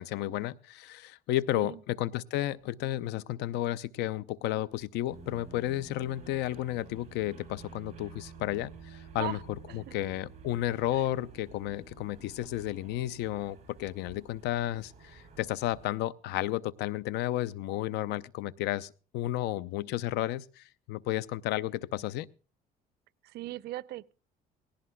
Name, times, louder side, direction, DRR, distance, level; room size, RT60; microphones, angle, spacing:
voice 1, 0.0-9.4 9.7-22.3, left 14 dB, 85° left, 0.6 m, -32 dB
sound 1, 5.1-15.9, right 5 dB, 40° right, 7.9 m, -51 dB
voice 2, 23.2-24.1, right 17 dB, 75° right, 0.6 m, -39 dB
19.0 x 17.0 x 2.2 m
cardioid pair, 110°, 17 cm